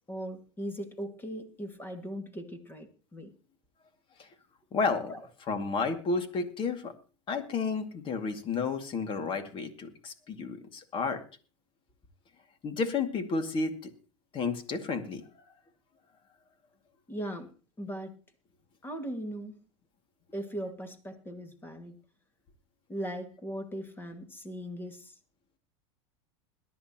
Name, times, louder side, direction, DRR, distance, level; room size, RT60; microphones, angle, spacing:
voice 1, 0.1-3.3 5.1-5.2 17.1-17.5 17.8-18.1 18.8-19.6 20.3-22.0 22.9-25.1, equal, 15° left, 6 dB, 2.1 m, -39 dB
voice 2, 4.7-5.1 5.4-6.9 7.3-11.2 12.6-13.9 14.3-15.5, left 4 dB, 30° left, 7 dB, 2.2 m, -32 dB
21.5 x 11.0 x 3.0 m, 0.35 s
supercardioid pair, 130°, 16 cm